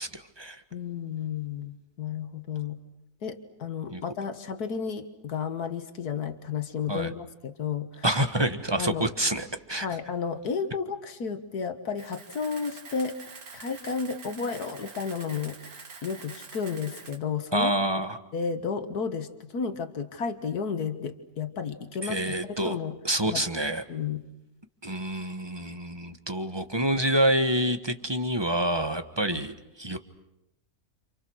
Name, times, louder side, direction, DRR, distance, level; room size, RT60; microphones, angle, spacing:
voice 1, 0.0-0.6 3.9-4.0 6.9-7.1 8.0-10.0 17.5-18.2 22.0-22.8 23.0-23.8 24.8-30.0, right 1 dB, 15° right, 8 dB, 1.4 m, -27 dB
voice 2, 0.7-2.8 3.2-8.0 8.8-9.1 9.8-13.2 13.5-15.6 16.0-17.7 18.3-23.0 23.3-23.4 23.9-24.2 29.3-29.4, left 6 dB, 85° left, 8 dB, 2.1 m, -32 dB
Camera, 12.0-17.2, right 4 dB, 70° right, 2.2 m, -46 dB
29.5 x 28.5 x 6.4 m, 0.86 s
omnidirectional pair, 1.6 m